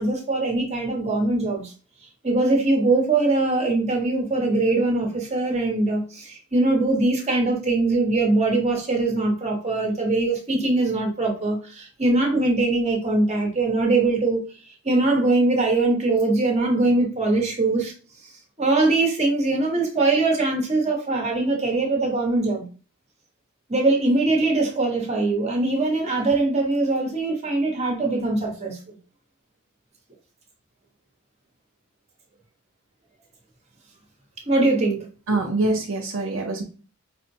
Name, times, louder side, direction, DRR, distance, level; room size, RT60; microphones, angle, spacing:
voice 1, 0.0-1.7 2.2-14.4 14.8-17.9 18.6-22.6 23.7-29.0 34.5-35.1, right 2 dB, 30° right, 1.0 m, -22 dB
voice 2, 35.3-36.6, right 2 dB, 60° right, 0.6 m, -24 dB
5.0 x 2.1 x 2.7 m
head